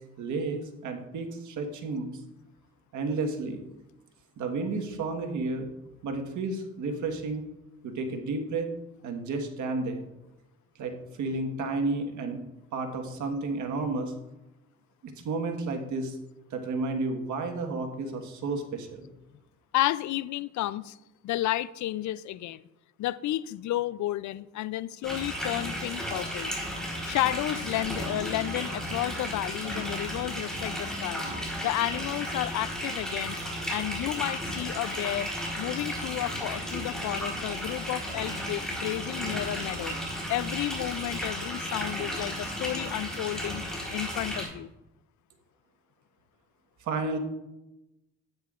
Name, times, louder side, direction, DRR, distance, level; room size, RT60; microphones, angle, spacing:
voice 1, 0.2-2.1 2.9-3.6 4.4-5.7 6.0-7.4 7.8-8.7 9.0-10.0 10.8-10.9 11.2-12.4 12.7-14.1 15.0-16.2 16.5-19.0 46.8-47.2, right 3 dB, 75° right, 1.4 m, -31 dB
voice 2, 19.7-21.0 21.2-22.6 23.0-26.5 27.0-31.3 31.6-33.4 33.7-35.3 35.6-40.0 40.3-43.6 43.9-44.7, left 14 dB, 70° left, 0.5 m, -31 dB
sound 1, 25.0-44.5, equal, ahead, 3.9 m, -34 dB
12.5 x 9.5 x 2.5 m
cardioid pair, 90°, 30 cm